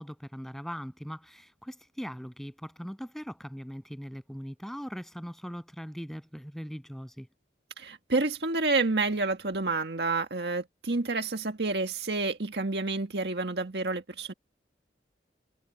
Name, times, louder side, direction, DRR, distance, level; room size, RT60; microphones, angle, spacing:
voice 1, 0.0-7.3, equal, ahead, 8.0 m, -40 dB
voice 2, 7.8-14.3, right 3 dB, 75° right, 1.7 m, -29 dB
head